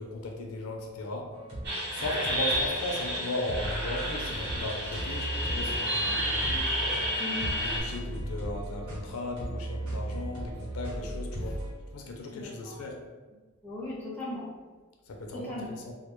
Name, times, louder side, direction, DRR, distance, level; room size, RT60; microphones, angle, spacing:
voice 1, 0.0-1.3 1.9-7.1 7.6-11.6 11.9-13.0 15.1-15.9, left 2 dB, 80° left, 1 dB, 0.4 m, -36 dB
sound 1, 1.3-11.7, right 1 dB, 75° right, 1.0 m, -37 dB
sound 2, 1.6-7.8, equal, 50° right, 0.7 m, -31 dB
voice 2, 7.2-7.5 12.3-12.9 13.6-14.5 15.3-15.7, left 1 dB, 5° left, -6 dB, 0.4 m, -38 dB
2.2 x 2.0 x 2.9 m, 1.4 s
head